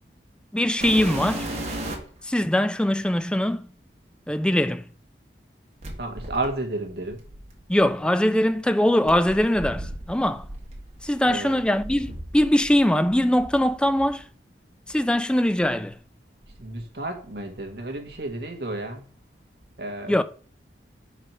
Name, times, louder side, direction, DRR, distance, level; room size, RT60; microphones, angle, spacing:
voice 1, 0.5-1.5 2.2-3.7 4.3-4.8 7.7-10.5 11.0-14.2 14.9-16.0 20.1-20.2, left 1 dB, 5° left, 0.3 m, -22 dB
sound 1, 0.8-2.2 3.1-3.2 5.8-7.9 9.1-12.8 13.1-14.1 14.9-15.0 15.6-15.7 16.4-17.5 17.8-18.3 19.6-19.7, right 1 dB, 40° right, 1.8 m, -36 dB
voice 2, 6.0-7.2 11.2-11.6 16.6-19.1 19.8-20.2, right 2 dB, 65° right, 1.5 m, -32 dB
4.9 x 4.4 x 6.0 m
head